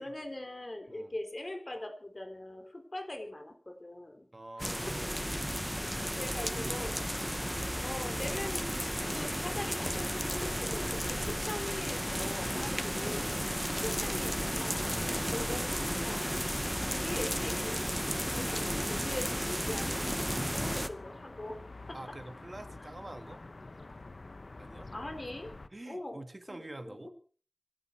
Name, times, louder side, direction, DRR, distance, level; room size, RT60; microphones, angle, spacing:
voice 1, 0.0-4.3 4.9-5.0 6.2-6.9 7.4-7.5 7.8-13.4 13.8-14.9 15.3-16.3 16.8-20.1 20.5-21.6 21.9-22.0 24.9-25.5 25.9-27.1, left 1 dB, 45° left, 7 dB, 3.9 m, -42 dB
voice 2, 4.3-5.2 6.5-6.8 20.3-20.7 21.9-23.4 24.6-24.9 25.7-27.1, right 1 dB, 40° right, 8 dB, 2.1 m, -46 dB
sound 1, 4.6-20.9, equal, ahead, 1.1 m, -33 dB
sound 2, 5.7-25.7, left 2 dB, 60° left, 1.1 m, -49 dB
26.0 x 11.0 x 4.6 m, 0.41 s
wide cardioid pair, 65°, 0 cm